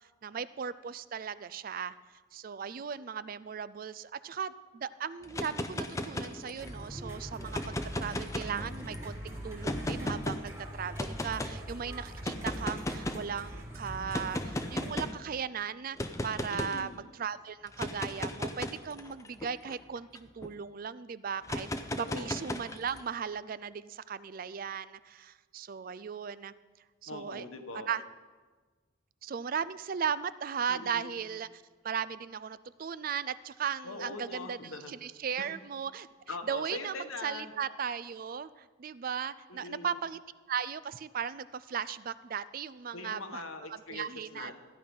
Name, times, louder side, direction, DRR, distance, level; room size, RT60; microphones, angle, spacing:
voice 1, 0.2-2.0 2.3-21.7 22.0-26.5 27.0-27.4 27.9-28.0 29.2-36.1 36.5-40.2 40.5-43.4 43.9-44.5, right 7 dB, 45° right, 16 dB, 0.3 m, -37 dB
sound 1, 5.2-6.8 7.4-8.9 9.6-10.4 11.0-11.5 12.2-13.3 14.1-15.2 16.0-16.8 17.7-20.5 21.4-23.0, left 1 dB, 15° left, 0.5 m, -36 dB
sound 2, 6.6-14.9, right 1 dB, 15° right, 1.6 m, -42 dB
voice 2, 16.5-17.0 22.0-22.3 27.1-27.9 30.7-31.1 33.8-34.9 35.4-35.5 36.3-37.5 39.5-40.0 42.9-44.6, left 3 dB, 85° left, 5 dB, 1.4 m, -42 dB
14.5 x 10.5 x 5.4 m, 1.4 s
head